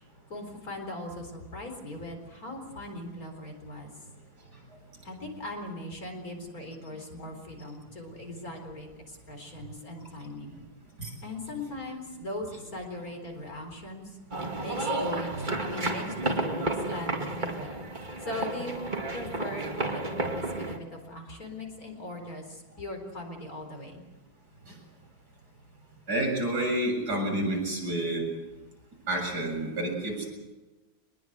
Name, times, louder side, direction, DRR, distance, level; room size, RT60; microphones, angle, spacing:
voice 1, 0.3-3.9 5.0-10.6 11.2-14.2 14.6-15.3 15.6-17.8 18.2-24.0, left 1 dB, 45° left, 4 dB, 4.6 m, -39 dB
sound 1, 14.3-20.8, right 2 dB, 25° right, 2.3 m, -32 dB
voice 2, 26.1-28.3 29.1-30.3, right 1 dB, 50° right, 0 dB, 7.9 m, -29 dB
24.5 x 21.5 x 8.0 m, 1.2 s
omnidirectional pair, 2.2 m